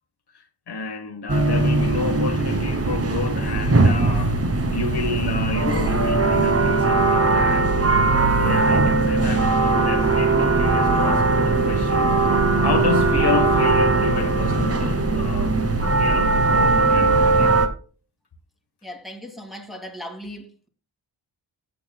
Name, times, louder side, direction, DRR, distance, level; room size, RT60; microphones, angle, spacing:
voice 1, 0.3-4.4 4.7-7.7 8.4-12.2 12.6-15.6 15.9-17.6, left 4 dB, 60° left, 1.2 m, -30 dB
sound 1, 1.3-17.7, right 3 dB, 30° right, 1.2 m, -19 dB
voice 2, 18.8-20.7, equal, ahead, 1.9 m, -37 dB
15.0 x 7.7 x 2.2 m
wide cardioid pair, 95°, 46 cm